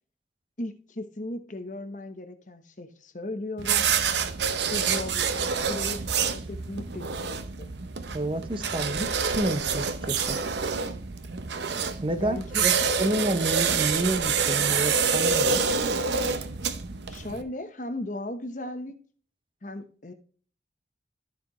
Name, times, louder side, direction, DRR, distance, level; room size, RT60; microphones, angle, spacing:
voice 1, 0.6-3.9 4.7-5.3 5.7-7.7 12.2-12.6 17.1-19.0 19.6-20.1, left 1 dB, 45° left, 0.9 m, -36 dB
sound 1, 3.6-17.4, right 6 dB, 75° right, 0.7 m, -27 dB
voice 2, 8.1-10.4 12.0-12.7 13.0-15.6, right 1 dB, 30° right, 0.7 m, -29 dB
13.5 x 4.7 x 3.1 m
head